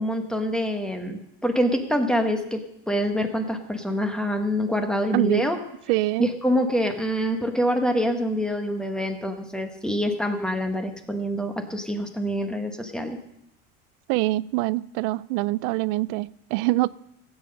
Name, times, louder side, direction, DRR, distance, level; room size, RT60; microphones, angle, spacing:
voice 1, 0.0-5.6 6.2-13.2, equal, 5° left, 5 dB, 1.0 m, -26 dB
voice 2, 5.1-5.5 5.9-6.3 14.1-16.9, right 19 dB, 85° right, 20 dB, 0.5 m, -24 dB
17.0 x 8.9 x 5.3 m, 0.79 s
cardioid pair, 165°, 29 cm